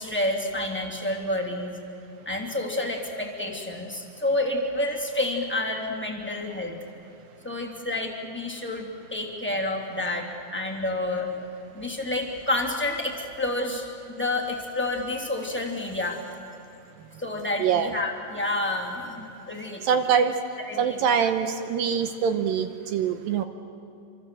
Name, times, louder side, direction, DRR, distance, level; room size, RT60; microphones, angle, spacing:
voice 1, 0.0-1.7 2.2-6.8 7.4-11.3 11.7-13.9 14.2-16.3 17.2-19.8 20.6-21.3, left 2 dB, 5° left, -1 dB, 2.0 m, -29 dB
voice 2, 17.6-18.0 19.8-20.3 20.8-23.4, right 7 dB, 75° right, 8 dB, 2.2 m, -24 dB
28.0 x 25.5 x 7.7 m, 2.9 s
omnidirectional pair, 5.1 m